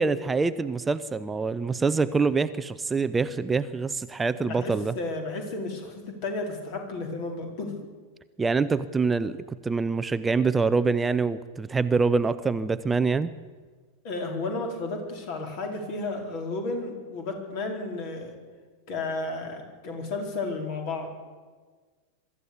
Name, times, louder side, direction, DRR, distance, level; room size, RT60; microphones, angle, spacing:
voice 1, 0.0-4.9 8.4-13.3, right 4 dB, 15° right, 14 dB, 0.6 m, -25 dB
voice 2, 4.4-7.8 14.0-18.3 18.9-21.1, left 3 dB, 45° left, 3 dB, 4.4 m, -33 dB
23.5 x 13.5 x 8.6 m, 1.5 s
figure-of-eight pair, 90°, 0 cm